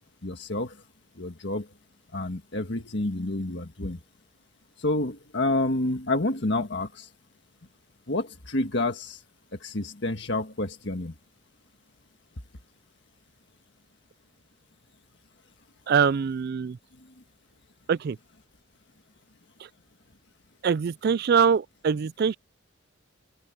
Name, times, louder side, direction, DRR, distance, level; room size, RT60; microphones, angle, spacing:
voice 1, 0.2-0.8 1.2-1.7 2.1-4.0 4.8-7.1 8.1-9.2 9.6-11.1, left 2 dB, 55° left, 1.7 m, -29 dB
voice 2, 15.9-16.8 17.9-18.2 20.6-22.4, right 6 dB, 50° right, 0.3 m, -23 dB
open air
head